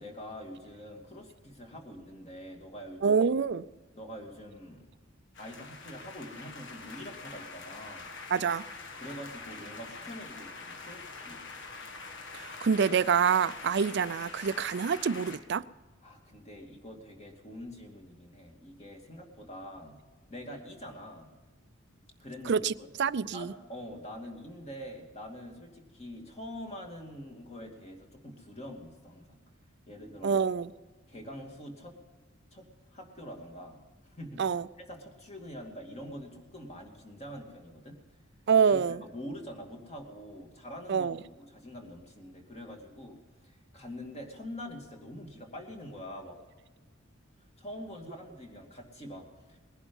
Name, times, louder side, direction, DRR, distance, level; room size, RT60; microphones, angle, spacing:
voice 1, 0.0-3.2 3.9-4.9 5.4-8.1 9.0-11.4 16.0-20.0 20.3-21.3 22.2-22.9 23.3-29.4 29.9-30.4 31.1-31.9 32.5-32.6 32.9-33.8 34.1-38.0 38.6-43.2 43.4-46.4 47.6-49.6, equal, 35° left, 2.5 m, -45 dB
voice 2, 3.0-3.6 8.3-8.6 12.3-15.6 22.5-22.7 23.0-23.5 30.2-30.7 34.4-34.6 38.5-39.0 40.9-41.2, right 6 dB, 60° right, 0.4 m, -26 dB
sound 1, 5.4-15.4, left 4 dB, 60° left, 1.6 m, -45 dB
20.0 x 11.0 x 5.4 m
head